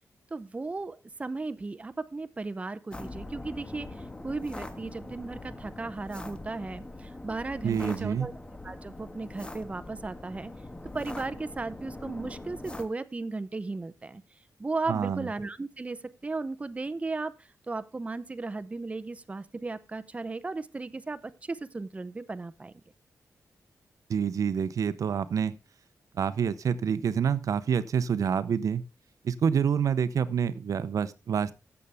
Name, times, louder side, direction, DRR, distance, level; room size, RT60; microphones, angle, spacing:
voice 1, 0.3-8.3 8.6-10.5 10.9-14.2 14.6-22.7, right 3 dB, 20° right, 0.7 m, -36 dB
sound 1, 2.9-12.8, left 2 dB, 15° left, 1.3 m, -42 dB
voice 2, 7.6-8.3 14.9-15.3 24.1-25.5 26.2-28.8 29.2-31.6, right 7 dB, 70° right, 0.6 m, -27 dB
15.5 x 6.8 x 3.4 m
wide cardioid pair, 125°, 6 cm